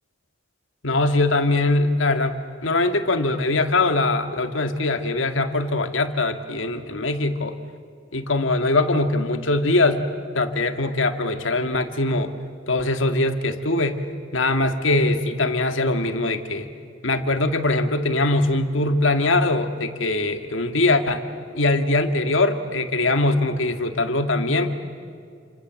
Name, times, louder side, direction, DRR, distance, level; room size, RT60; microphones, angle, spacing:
voice 1, 0.8-7.6 8.1-10.0 10.3-12.3 12.7-14.0 14.3-16.7 17.0-21.2 21.5-24.7, left 2 dB, 75° left, 7 dB, 2.0 m, -22 dB
29.0 x 26.5 x 7.6 m, 2.3 s
head